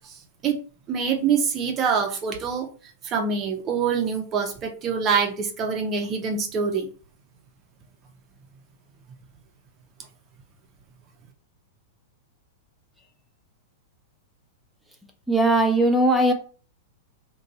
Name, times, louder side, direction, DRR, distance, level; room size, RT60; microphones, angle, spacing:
voice 1, 0.9-2.7 3.0-6.9, right 6 dB, 30° right, 3 dB, 0.6 m, -25 dB
voice 2, 15.3-16.3, right 1 dB, ahead, 2 dB, 0.8 m, -19 dB
2.5 x 2.3 x 4.0 m, 0.39 s
hypercardioid pair, 105°, 0 cm